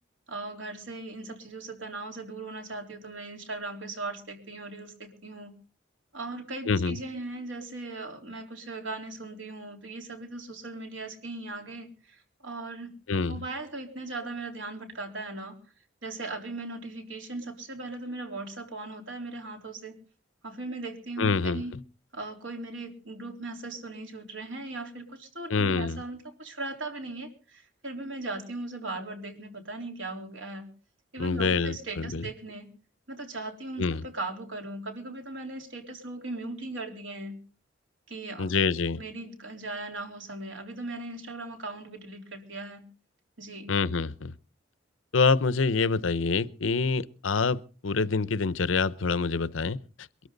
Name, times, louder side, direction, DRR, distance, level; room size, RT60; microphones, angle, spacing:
voice 1, 0.3-5.5 6.1-13.0 13.3-15.6 16.0-19.9 20.4-21.8 22.1-30.7 31.1-32.7 33.1-37.4 38.1-38.6 39.0-42.8 43.4-43.7, right 2 dB, 75° right, 3.8 m, -38 dB
voice 2, 6.7-7.0 13.1-13.4 21.2-21.8 25.5-26.0 31.2-32.3 33.8-34.0 38.4-39.0 43.7-44.3 45.1-50.1, left 4 dB, 85° left, 0.7 m, -26 dB
23.0 x 13.5 x 3.9 m
head